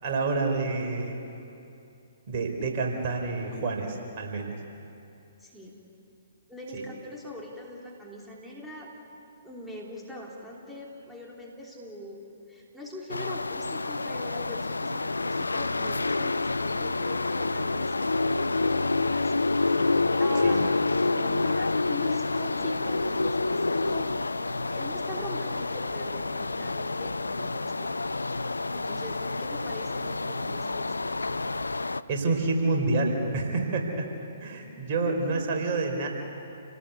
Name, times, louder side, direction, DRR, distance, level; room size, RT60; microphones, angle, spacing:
voice 1, 0.0-1.2 2.3-4.6 6.7-6.8 20.4-20.6 32.1-34.1 34.4-36.1, right 3 dB, 40° right, 2 dB, 4.4 m, -28 dB
voice 2, 5.4-5.8 6.5-8.9 9.4-12.2 12.5-19.3 20.2-24.1 24.7-27.9 28.7-31.1, left 1 dB, ahead, -4 dB, 3.2 m, -42 dB
sound 1, 13.1-32.0, left 3 dB, 80° left, 0.6 m, -28 dB
29.0 x 19.0 x 8.4 m, 2.7 s
figure-of-eight pair, 125°, 0 cm